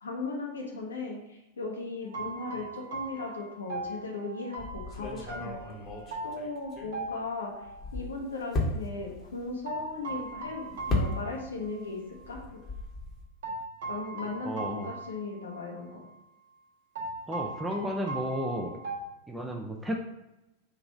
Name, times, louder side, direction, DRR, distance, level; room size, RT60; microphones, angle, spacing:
voice 1, 0.0-5.6 6.2-7.5 7.9-12.0 12.3-12.6 13.9-16.0, left 3 dB, 70° left, 0 dB, 0.9 m, -37 dB
sound 1, 2.1-7.9 9.7-11.9 12.2-12.3 13.4-15.7 16.0-16.1 17.0-19.0, right 3 dB, 60° right, 0.9 m, -39 dB
sound 2, 4.6-7.3 7.6-11.7 11.9-13.2, left 2 dB, 30° left, 1.0 m, -35 dB
voice 2, 14.4-14.9 17.3-18.8 19.3-20.0, equal, 10° right, 1 dB, 0.4 m, -33 dB
3.7 x 2.9 x 4.6 m, 0.96 s
figure-of-eight pair, 90°, 0 cm